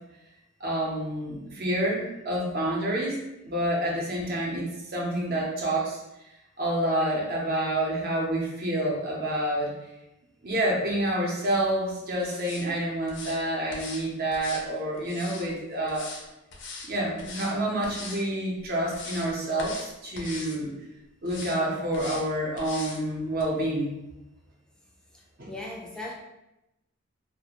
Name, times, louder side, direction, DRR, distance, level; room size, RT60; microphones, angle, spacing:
voice 1, 0.6-3.2 3.4-6.0 6.6-9.7 10.4-16.1 16.8-20.7 21.2-23.9 25.4-25.5, right 1 dB, 50° right, -2 dB, 0.6 m, -28 dB
sound 1, 12.2-12.7 13.1-13.4 13.7-14.0 14.3-15.5 15.9-16.2 16.5-16.9 17.2-17.5 17.8-18.2 18.6-19.3 19.6-19.9 20.2-20.6 21.3-21.6 21.9-22.2 22.6-23.0 23.4-23.5, left 3 dB, 60° left, 0.5 m, -40 dB
voice 2, 25.1-26.1, left 2 dB, 5° left, -3 dB, 0.3 m, -39 dB
2.4 x 2.0 x 2.9 m, 0.93 s
head